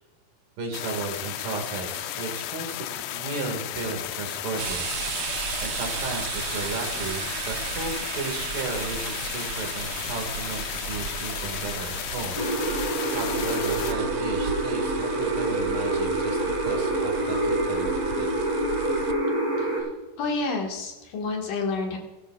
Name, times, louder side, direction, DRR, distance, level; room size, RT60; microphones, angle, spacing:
voice 1, 0.6-5.3 5.6-12.4 12.8-18.3, right 4 dB, 75° right, 3 dB, 3.5 m, -35 dB
sound 1, 0.7-13.9, left 13 dB, 85° left, 1.8 m, -34 dB
Soda pop open and pour, 4.6-19.1, right 8 dB, 90° right, 1.4 m, -35 dB
sound 2, 12.3-19.8, right 2 dB, 10° right, 4.1 m, -26 dB
voice 2, 20.2-22.0, left 3 dB, 70° left, 0 dB, 3.2 m, -29 dB
18.0 x 14.0 x 2.3 m, 1.2 s
omnidirectional pair, 4.0 m